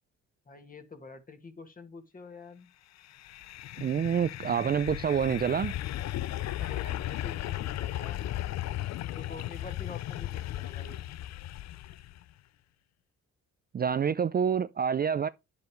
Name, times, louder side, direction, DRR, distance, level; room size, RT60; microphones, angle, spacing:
voice 1, 0.5-2.7 6.6-8.3 8.9-11.0, left 4 dB, 30° left, 2.1 m, -47 dB
sound 1, 3.0-12.2, left 14 dB, 60° left, 0.5 m, -36 dB
voice 2, 3.8-5.7 13.7-15.3, right 7 dB, 30° right, 0.5 m, -27 dB
10.5 x 7.0 x 3.2 m
cardioid pair, 90°, 30 cm